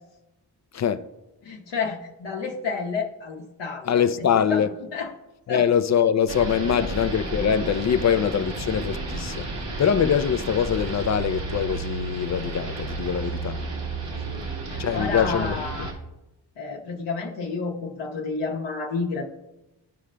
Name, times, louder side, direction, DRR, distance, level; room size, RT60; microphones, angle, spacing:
voice 1, 0.7-1.1 3.8-4.7 5.5-9.5 9.8-13.6 14.8-15.6, left 8 dB, 40° left, 0.5 m, -23 dB
voice 2, 1.4-4.7 4.9-5.1 5.5-5.7 6.7-6.9 14.1-15.9 16.6-19.2, left 4 dB, 75° left, 1.0 m, -31 dB
sound 1, 6.3-15.9, right 3 dB, 75° right, 1.9 m, -32 dB
13.5 x 4.9 x 2.2 m
cardioid pair, 70°, 43 cm